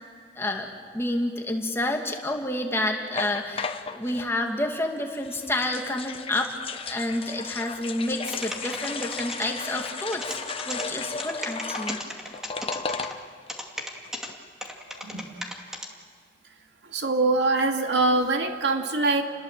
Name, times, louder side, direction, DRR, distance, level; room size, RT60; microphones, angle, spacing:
voice 1, 0.4-0.7 0.9-12.0, left 1 dB, 15° left, 2 dB, 2.4 m, -29 dB
sound 1, 3.1-4.3 5.1-13.5 13.8-13.9 14.1-14.4, left 5 dB, 35° left, 1.0 m, -35 dB
sound 2, 8.3-9.5 9.9-10.8 11.2-13.1 13.5-14.3 14.6-15.9, equal, 5° right, 2.5 m, -35 dB
voice 2, 16.9-19.2, right 3 dB, 85° right, 4 dB, 2.4 m, -23 dB
29.5 x 21.0 x 7.7 m, 2.1 s
head